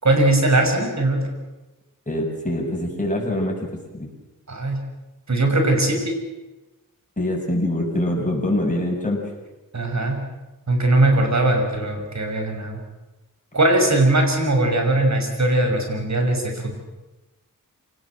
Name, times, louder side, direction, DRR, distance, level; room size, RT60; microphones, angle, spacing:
voice 1, 0.0-1.2 4.5-4.8 5.3-6.2 9.7-10.2 10.7-12.8 13.5-16.8, right 2 dB, 55° right, 3 dB, 6.0 m, -20 dB
voice 2, 2.1-4.1 7.2-9.2, left 1 dB, 20° left, -2 dB, 7.6 m, -24 dB
27.0 x 19.0 x 7.6 m, 1.1 s
wide cardioid pair, 80°, 34 cm